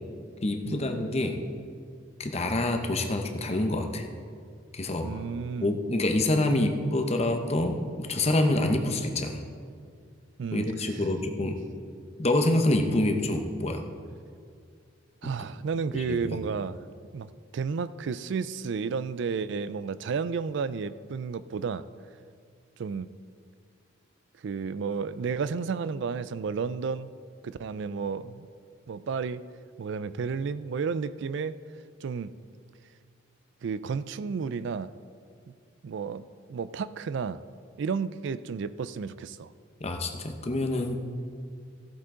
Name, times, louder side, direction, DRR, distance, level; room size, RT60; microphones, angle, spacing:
voice 1, 0.4-1.4 2.2-4.0 4.7-5.2 5.6-9.4 10.5-11.6 12.2-13.8 15.9-16.4 39.8-41.0, left 1 dB, 30° left, 4 dB, 0.8 m, -26 dB
voice 2, 5.0-5.8 10.4-11.0 11.4-11.5 15.2-16.8 17.1-21.8 22.8-23.1 24.4-27.1 27.4-28.5 28.9-29.4 29.8-31.6 32.0-32.3 33.6-34.9 35.5-35.6 35.8-36.2 36.5-37.4 37.8-39.5, right 5 dB, 60° right, 15 dB, 0.3 m, -32 dB
14.5 x 8.2 x 3.8 m, 2.2 s
head